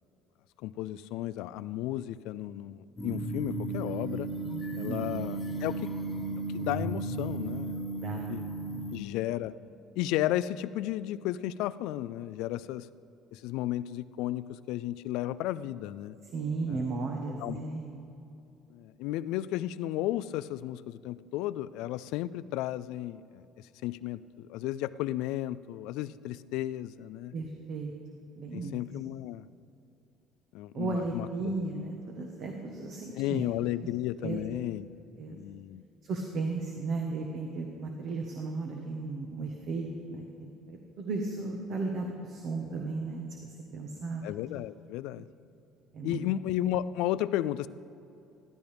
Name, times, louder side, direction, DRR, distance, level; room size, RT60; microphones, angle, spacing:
voice 1, 0.6-4.3 4.8-5.9 6.5-8.5 8.9-9.5 10.0-12.9 13.3-16.2 16.7-16.9 17.4-17.6 18.7-27.3 28.5-29.5 30.5-31.3 33.1-34.9 35.3-35.8 44.2-45.3 46.0-47.7, left 14 dB, 75° left, 16 dB, 0.3 m, -34 dB
sound 1, 3.0-9.0, right 2 dB, 25° left, 1.2 m, -34 dB
voice 2, 7.9-8.4 8.7-8.9 16.3-18.0 27.3-27.9 28.4-28.8 30.7-33.5 34.2-34.4 35.2-35.4 36.0-44.2 45.9-46.2, right 3 dB, 55° right, 2 dB, 1.2 m, -35 dB
15.0 x 12.5 x 3.5 m, 2.8 s
cardioid pair, 125°, 0 cm